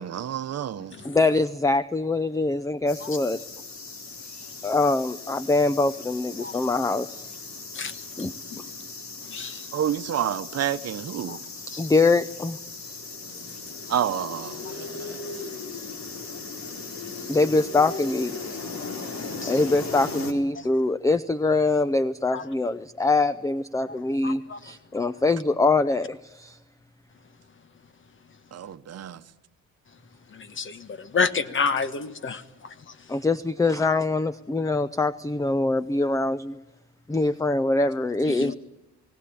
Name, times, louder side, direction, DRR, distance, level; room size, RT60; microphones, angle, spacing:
voice 1, 0.0-1.1 9.7-11.4 13.9-15.4 28.5-29.2, right 10 dB, 55° right, 1.0 m, -29 dB
voice 2, 1.0-3.4 4.6-7.2 8.2-8.3 11.8-12.6 17.3-18.3 19.4-26.6 33.1-36.6 37.1-38.5, left 3 dB, 10° left, 0.6 m, -23 dB
sound 1, 2.9-20.3, left 4 dB, 65° left, 3.6 m, -38 dB
voice 3, 6.4-6.8 7.7-8.6 9.3-9.7 11.3-11.4 11.7-11.9 19.4-19.6 20.5-20.7 22.3-22.4 23.9-24.0 24.2-24.6 30.3-33.1 38.2-38.5, left 5 dB, 40° left, 1.4 m, -30 dB
20.0 x 18.0 x 8.7 m
cardioid pair, 90°, 30 cm